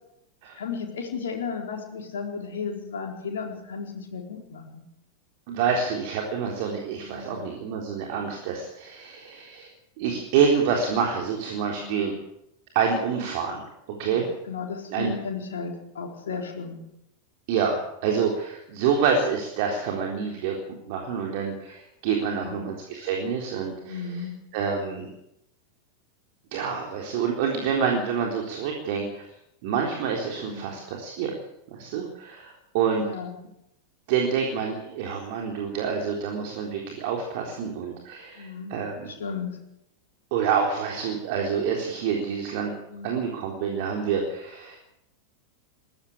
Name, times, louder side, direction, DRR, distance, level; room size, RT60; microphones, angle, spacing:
voice 1, 0.6-4.8 7.0-7.5 11.8-12.1 14.0-16.8 22.3-22.7 23.9-24.3 30.4-30.8 33.0-33.4 38.4-38.8 39.1-39.5 42.9-43.1, left 5 dB, 60° left, 1 dB, 4.4 m, -34 dB
voice 2, 5.5-9.7 10.0-12.1 12.7-13.6 14.0-14.3 14.9-15.1 17.5-20.5 20.9-24.2 24.5-25.1 26.5-29.2 29.6-31.3 31.7-33.0 34.1-39.1 40.3-42.7 43.0-44.8, right 6 dB, 50° right, 1 dB, 3.8 m, -27 dB
20.5 x 15.5 x 8.6 m, 0.83 s
figure-of-eight pair, 90°, 0 cm